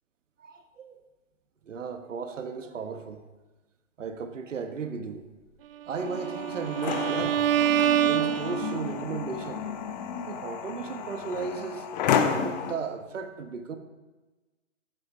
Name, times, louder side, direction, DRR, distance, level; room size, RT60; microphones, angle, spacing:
voice 1, 0.4-1.0 1.6-3.2 4.0-5.3 5.8-7.5 8.0-9.7 10.2-11.9 12.4-13.8, right 5 dB, 70° right, 8 dB, 1.3 m, -35 dB
sound 1, 5.9-12.7, left 7 dB, 35° left, 1.0 m, -31 dB
Bowed string instrument, 6.0-9.1, right 11 dB, 50° right, 0.5 m, -26 dB
14.5 x 10.5 x 3.2 m, 1.2 s
hypercardioid pair, 135°, 39 cm